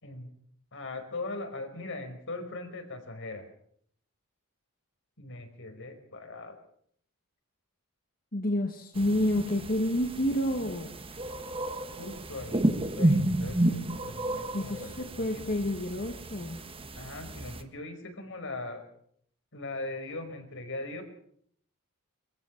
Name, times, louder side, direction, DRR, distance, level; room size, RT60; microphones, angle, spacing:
voice 1, 0.7-3.4 5.2-6.6 12.0-15.2 16.9-18.8 19.5-21.0, left 2 dB, 60° left, 6 dB, 5.0 m, -40 dB
voice 2, 8.3-11.0 14.5-16.6, left 1 dB, 40° left, 4 dB, 1.9 m, -29 dB
sound 1, 8.9-17.6, right 1 dB, 25° right, 1.5 m, -31 dB
23.5 x 15.0 x 7.4 m, 0.64 s
head